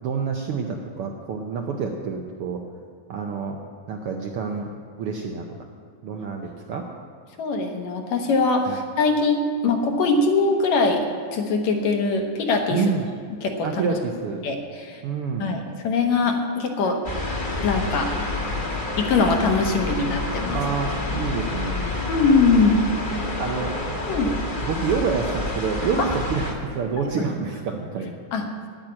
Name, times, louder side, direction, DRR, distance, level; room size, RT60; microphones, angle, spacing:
voice 1, 0.0-2.6 3.1-3.6 3.9-4.7 5.0-5.6 6.0-6.9 8.7-8.8 12.7-13.1 13.6-14.4 15.0-15.5 20.5-21.9 23.4-24.0 24.6-28.2, right 5 dB, 80° right, 2 dB, 1.3 m, -28 dB
voice 2, 7.4-12.8 13.4-13.8 14.4-15.0 15.4-17.0 17.6-18.1 19.0-20.6 22.1-22.8 23.1-23.2 24.1-24.3 26.0-26.1 27.0-27.1 28.3-28.4, left 3 dB, 70° left, 3 dB, 2.4 m, -22 dB
sound 1, 17.0-26.5, left 2 dB, 35° left, 0.8 m, -28 dB
10.0 x 9.0 x 8.6 m, 2.1 s
omnidirectional pair, 3.4 m